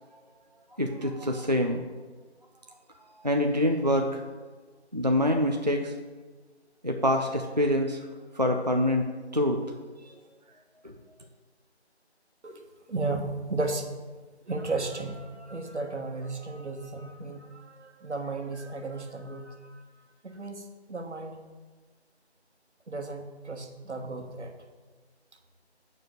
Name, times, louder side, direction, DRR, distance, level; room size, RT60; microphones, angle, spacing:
voice 1, 0.8-1.8 3.2-4.2 4.9-5.9 6.8-8.0 8.3-9.1 9.3-9.6 10.0-10.1 10.8-10.9, left 1 dB, 40° right, 3 dB, 0.4 m, -25 dB
voice 2, 12.4-13.9 14.5-19.8 20.2-21.4 22.9-24.5, right 3 dB, 85° right, 4 dB, 1.4 m, -34 dB
7.6 x 4.6 x 6.3 m, 1.4 s
figure-of-eight pair, 180°, 34 cm